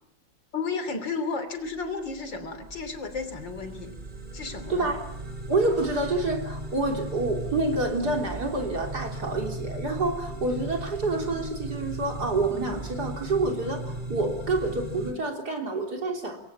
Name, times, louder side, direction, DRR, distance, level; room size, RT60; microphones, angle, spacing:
voice 1, 0.5-3.9 4.3-4.9, left 4 dB, 70° left, 9 dB, 3.8 m, -33 dB
sound 1, 1.7-15.1, right 2 dB, 25° right, 3.7 m, -37 dB
voice 2, 4.7-5.0 5.5-16.4, right 2 dB, 55° right, 3 dB, 4.1 m, -28 dB
27.5 x 22.5 x 7.3 m, 0.84 s
omnidirectional pair, 2.1 m